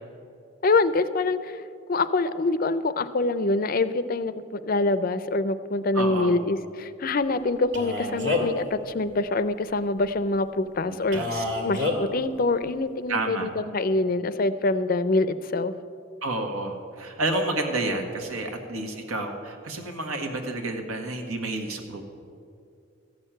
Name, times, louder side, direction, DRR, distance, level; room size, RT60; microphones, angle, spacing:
voice 1, 0.6-1.6 1.9-15.7, left 2 dB, 40° left, 13 dB, 0.4 m, -25 dB
voice 2, 5.9-6.3 10.9-11.4 13.1-13.5 16.2-22.0, right 2 dB, 85° right, 4 dB, 1.6 m, -30 dB
Male speech man speaking, 7.7-8.6 11.1-12.0, left 3 dB, 55° right, 1.9 m, -27 dB
14.5 x 6.5 x 8.9 m, 2.5 s
head